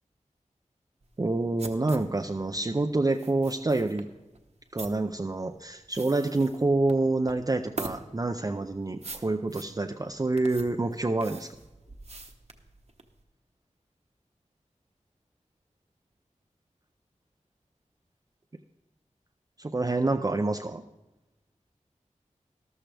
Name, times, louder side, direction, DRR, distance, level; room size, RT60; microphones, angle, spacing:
sound 1, 1.0-13.2, right 3 dB, 55° right, 1.1 m, -43 dB
voice 1, 1.2-4.1 4.7-11.5 19.6-20.8, right 2 dB, 30° right, 5 dB, 0.5 m, -27 dB
13.5 x 12.5 x 3.4 m, 1.0 s
wide cardioid pair, 70°, 13 cm